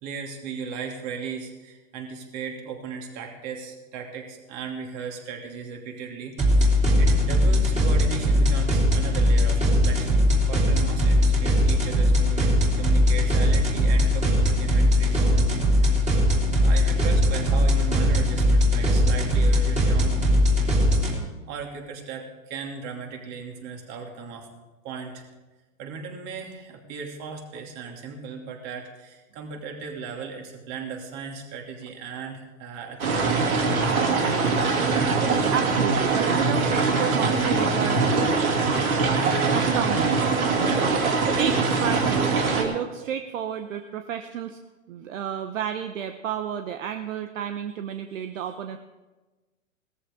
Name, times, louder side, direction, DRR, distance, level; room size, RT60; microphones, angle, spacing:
voice 1, 0.0-16.0 16.6-20.2 21.5-24.5 24.8-25.3 25.8-34.2, right 5 dB, 40° right, 2 dB, 2.9 m, -37 dB
sound 1, 6.4-21.1, left 1 dB, 15° right, 3.3 m, -20 dB
sound 2, 33.0-42.6, right 4 dB, 85° right, 3.0 m, -22 dB
voice 2, 35.5-38.4 39.5-40.2 41.4-44.6 44.9-48.8, right 9 dB, 65° right, 7 dB, 1.0 m, -31 dB
17.5 x 14.0 x 3.7 m, 1.2 s
hypercardioid pair, 120°, 42 cm